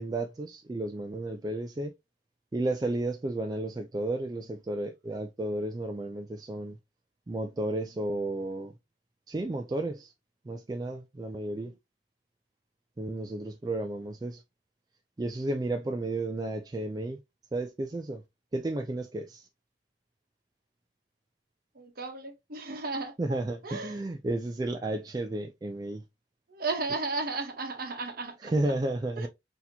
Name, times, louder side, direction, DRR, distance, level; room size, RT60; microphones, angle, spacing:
voice 1, 0.0-1.9 2.5-6.8 7.3-8.7 9.3-10.1 10.5-11.7 13.0-14.4 15.2-17.2 17.5-18.2 18.5-19.5 23.2-26.0 28.4-29.3, right 2 dB, 20° right, 0.3 m, -32 dB
voice 2, 21.7-23.1 23.6-24.0 26.5-28.5 29.2-29.3, right 3 dB, 50° right, 1.0 m, -34 dB
4.1 x 2.8 x 2.7 m
head